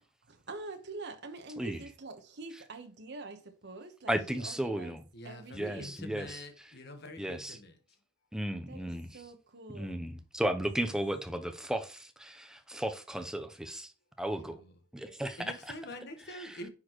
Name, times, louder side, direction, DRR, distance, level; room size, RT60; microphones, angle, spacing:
voice 1, 0.3-5.0 5.2-6.0 8.7-10.0, right 3 dB, 60° right, 1.2 m, -45 dB
voice 2, 4.1-5.0 5.5-6.4 7.2-7.6 8.3-9.2 9.7-13.9 14.2-14.6 14.9-15.5 16.3-16.5, right 1 dB, 5° right, 0.7 m, -35 dB
voice 3, 5.1-7.7 14.4-14.7 15.4-16.7, left 1 dB, 55° left, 1.2 m, -45 dB
9.5 x 4.3 x 3.0 m
head